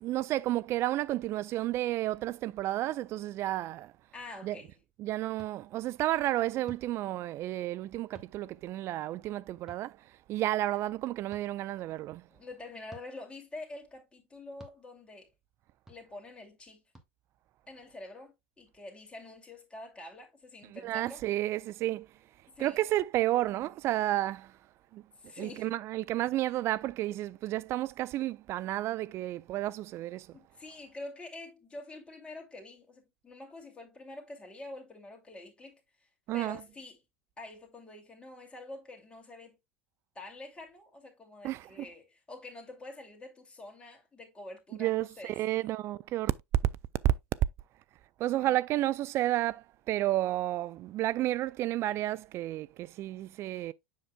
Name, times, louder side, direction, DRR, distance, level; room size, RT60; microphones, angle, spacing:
voice 1, 0.0-3.9 4.4-4.6 5.0-12.3 20.7-22.1 22.6-24.6 24.9-25.0 25.4-30.4 36.3-36.6 41.4-41.9 44.8-46.3 47.0-47.1 48.2-53.7, right 15 dB, 40° right, 0.4 m, -31 dB
voice 2, 4.1-4.7 12.3-15.3 15.9-16.8 17.7-21.2 22.5-22.8 25.2-25.7 30.3-35.8 36.3-37.0 37.4-39.6 40.1-45.7 48.4-48.6, left 2 dB, 15° left, 2.4 m, -47 dB
sound 1, 5.4-5.5 6.6-6.9 8.1-8.3 9.7-9.8 11.3-11.4 12.9-13.1 14.6-14.8 15.9-16.0 16.9-17.1, right 2 dB, 5° right, 1.6 m, -51 dB
7.4 x 5.9 x 2.3 m
figure-of-eight pair, 80°, 7 cm